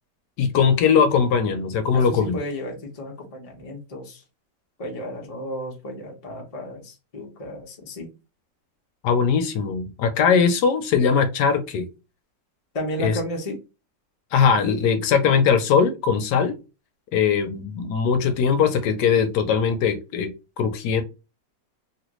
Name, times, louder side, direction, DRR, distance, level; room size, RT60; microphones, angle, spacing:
voice 1, 0.4-2.4 9.0-11.8 13.0-13.1 14.3-16.6 17.1-20.3 20.6-21.0, left 6 dB, 70° left, 8 dB, 1.1 m, -20 dB
voice 2, 1.9-4.2 4.8-8.1 12.7-13.6, equal, 40° left, 0 dB, 0.5 m, -33 dB
3.0 x 2.4 x 3.0 m, 0.28 s
omnidirectional pair, 2.0 m